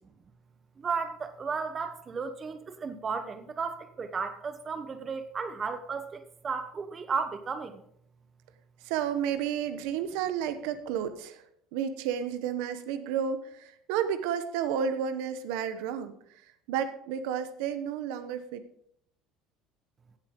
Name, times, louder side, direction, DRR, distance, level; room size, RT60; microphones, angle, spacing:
voice 1, 0.8-7.8, right 5 dB, 25° right, 9 dB, 1.1 m, -34 dB
voice 2, 8.8-11.4 11.7-16.1 16.7-18.6, right 8 dB, 85° right, 10 dB, 1.0 m, -31 dB
16.0 x 8.1 x 3.8 m, 0.68 s
cardioid pair, 140°, 0 cm